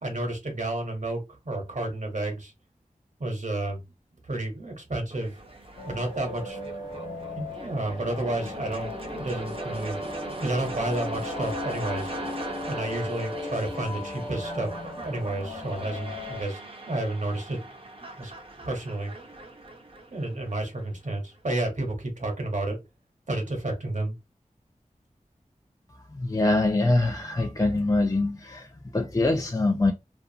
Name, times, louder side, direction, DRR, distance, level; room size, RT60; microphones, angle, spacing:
voice 1, 0.0-2.5 3.2-3.8 4.2-5.3 5.9-6.9 7.3-10.0 10.4-12.1 12.7-14.7 15.0-16.6 16.9-17.6 18.2-18.3 18.6-19.1 20.1-22.8 23.3-24.1, right 2 dB, 60° right, 1.0 m, -31 dB
sound 1, 5.1-21.1, right 2 dB, 40° right, 0.7 m, -40 dB
sound 2, 5.8-16.4, left 3 dB, 70° left, 1.0 m, -38 dB
voice 2, 25.9-29.9, left 2 dB, 25° left, 0.4 m, -24 dB
2.5 x 2.2 x 2.7 m
wide cardioid pair, 55°, 14 cm